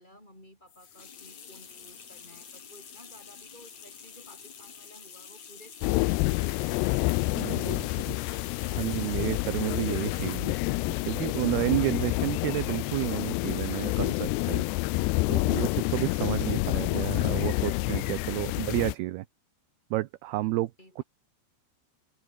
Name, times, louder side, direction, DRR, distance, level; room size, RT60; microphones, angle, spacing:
voice 1, 0.0-7.4 14.9-15.4 18.5-18.8 20.8-21.0, equal, 10° left, 7.1 m, -55 dB
sound 1, 0.7-10.5, left 7 dB, 40° left, 4.0 m, -48 dB
sound 2, 5.8-19.0, left 22 dB, 85° left, 2.5 m, -28 dB
voice 2, 7.4-8.2 8.7-10.6 11.1-14.9 15.3-19.3 19.9-20.7 21.0-21.1, right 17 dB, 75° right, 2.5 m, -31 dB
omnidirectional pair, 5.2 m